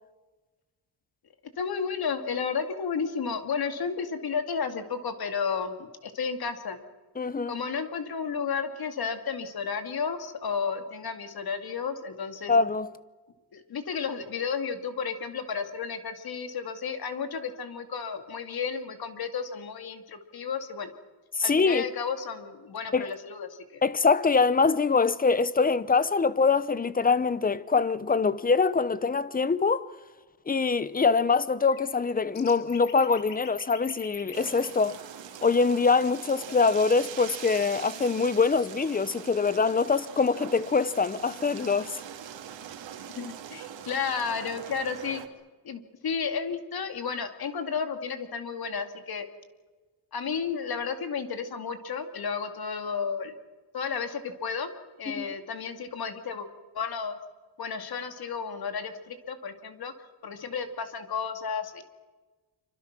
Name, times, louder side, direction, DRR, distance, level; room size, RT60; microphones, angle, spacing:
voice 1, 1.6-6.8 7.5-12.5 13.5-20.9 21.4-23.8 43.1-45.2 45.6-49.3 50.1-53.3 53.7-54.7 55.0-56.5 56.7-57.2 57.6-59.9 60.2-61.8, left 6 dB, 55° left, 2.5 m, -32 dB
voice 2, 7.2-7.5 12.5-12.9 21.3-21.9 22.9-23.1 23.8-29.9 30.5-35.0 35.4-41.9 55.2-55.3, left 4 dB, 20° left, 0.8 m, -24 dB
sound 1, 31.6-34.7 38.2-38.3 38.5-38.9, left 7 dB, 80° left, 4.5 m, -45 dB
sound 2, 34.3-45.3, right 9 dB, 85° right, 2.5 m, -42 dB
27.0 x 25.0 x 6.1 m
wide cardioid pair, 145°, 44 cm